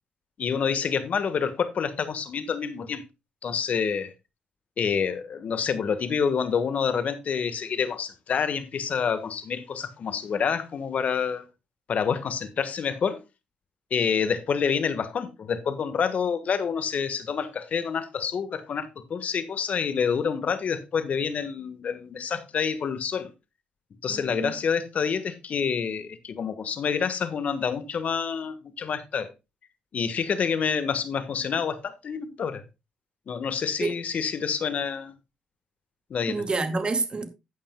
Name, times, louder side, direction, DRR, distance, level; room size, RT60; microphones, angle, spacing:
voice 1, 0.4-3.0 3.4-4.1 4.8-11.4 11.9-13.2 13.9-23.3 24.0-29.3 29.9-32.6 33.3-35.1 36.1-36.4, left 6 dB, 55° left, 1.4 m, -28 dB
voice 2, 24.1-24.6 33.8-33.9 36.3-37.3, right 3 dB, 35° right, 2.2 m, -28 dB
13.0 x 8.9 x 2.3 m
hypercardioid pair, 55°, 3 cm